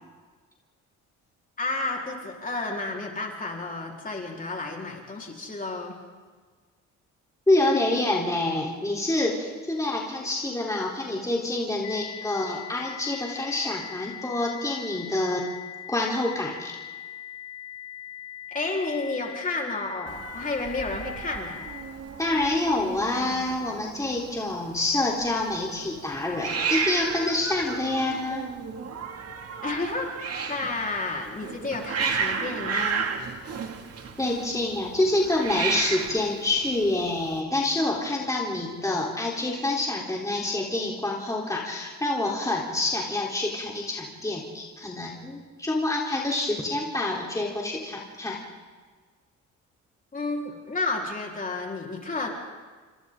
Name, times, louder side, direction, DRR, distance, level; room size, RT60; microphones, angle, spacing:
voice 1, 1.6-6.0 18.5-21.6 29.6-30.1 30.5-33.0 50.1-52.3, left 3 dB, 25° left, -1 dB, 4.4 m, -31 dB
voice 2, 7.5-15.4 15.9-16.7 22.2-28.4 34.2-48.4, left 2 dB, 10° left, -3 dB, 3.8 m, -27 dB
sound 1, 11.8-21.8, left 11 dB, 50° left, 2.4 m, -41 dB
Hiss, 20.1-37.4, right 5 dB, 55° right, 2.4 m, -33 dB
29.0 x 25.5 x 3.9 m, 1.5 s
cardioid pair, 90°, 30 cm